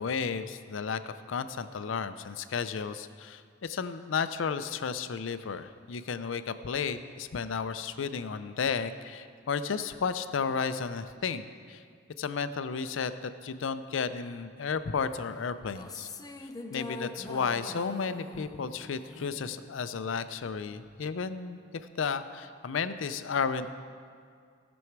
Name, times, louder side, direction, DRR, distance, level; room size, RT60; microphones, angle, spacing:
voice 1, 0.0-11.8 12.2-16.1 16.7-21.6 22.0-23.8, left 5 dB, 80° left, 11 dB, 0.5 m, -33 dB
sound 1, 15.6-20.1, left 2 dB, 20° left, 0.5 m, -43 dB
17.5 x 6.2 x 4.7 m, 2.2 s
head